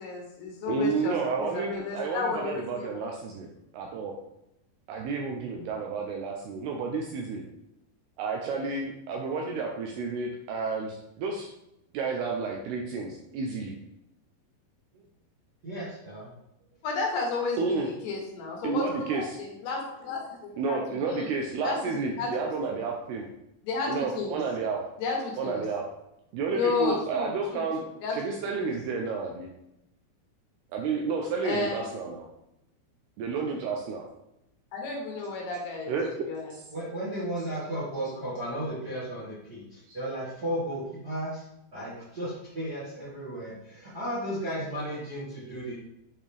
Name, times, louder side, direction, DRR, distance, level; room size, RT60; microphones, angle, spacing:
voice 1, 0.0-3.1 16.8-20.8 21.1-21.3 21.6-22.3 22.6-22.7 23.6-24.4 25.0-25.6 26.5-27.6 28.0-28.7 31.4-31.8 34.7-36.0 36.3-36.5, left 4 dB, 70° left, 0 dB, 3.1 m, -32 dB
voice 2, 0.7-4.1 4.9-7.4 8.2-11.5 11.9-13.8 17.6-17.9 18.6-19.4 20.6-23.3 23.9-24.8 25.4-25.9 26.3-27.8 28.1-29.5 30.7-32.3 33.2-34.0 35.9-36.1 39.9-40.0, right 4 dB, 80° right, 1 dB, 2.4 m, -31 dB
voice 3, 15.6-16.3 36.7-41.4 41.7-45.7, right 1 dB, 40° right, -9 dB, 1.4 m, -34 dB
8.8 x 4.3 x 3.4 m, 0.84 s
omnidirectional pair, 5.2 m